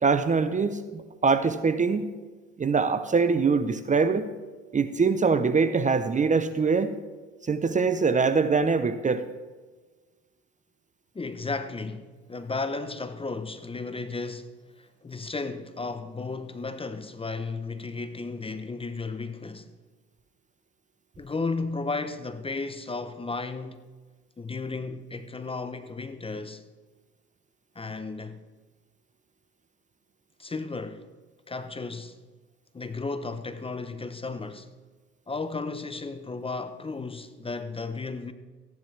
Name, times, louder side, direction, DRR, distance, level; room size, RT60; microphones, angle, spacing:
voice 1, 0.0-2.1 2.6-4.3 4.7-6.9 7.5-9.3, right 4 dB, 25° right, 0.7 m, -23 dB
voice 2, 11.1-19.7 21.2-23.8 24.4-26.6 27.8-28.4 30.4-31.1 31.5-32.2 32.7-34.7 35.3-38.3, left 3 dB, 15° left, 0.7 m, -34 dB
15.0 x 10.5 x 3.3 m
supercardioid pair, 75°, 33 cm